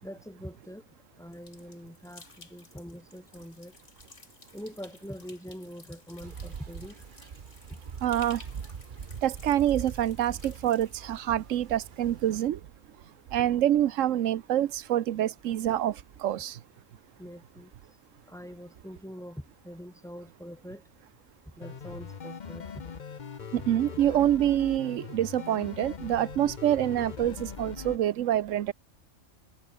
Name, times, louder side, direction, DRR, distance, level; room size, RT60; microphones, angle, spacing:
voice 1, 0.0-0.8 1.2-3.7 4.5-6.9 7.7-7.8 17.2-17.7 18.3-20.8 21.6-22.8, equal, ahead, 3.3 m, -43 dB
sound 1, 1.3-11.3, left 3 dB, 70° left, 3.6 m, -55 dB
sound 2, 6.2-12.5, right 6 dB, 45° right, 1.1 m, -42 dB
voice 2, 8.0-8.4 9.2-12.6 13.3-16.6 23.5-28.7, right 11 dB, 85° right, 1.1 m, -26 dB
sound 3, 21.6-28.0, left 7 dB, 40° left, 0.9 m, -41 dB
omnidirectional pair, 1.3 m